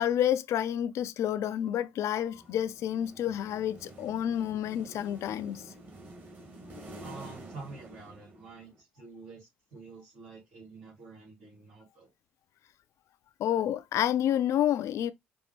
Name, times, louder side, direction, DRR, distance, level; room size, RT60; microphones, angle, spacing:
voice 1, 0.0-5.6 13.4-15.1, left 11 dB, 65° left, 0.4 m, -29 dB
sound 1, 2.3-8.8, right 1 dB, 40° right, 2.2 m, -49 dB
voice 2, 7.0-12.1, right 4 dB, 70° right, 2.6 m, -48 dB
5.2 x 2.5 x 3.2 m
hypercardioid pair, 45°, 5 cm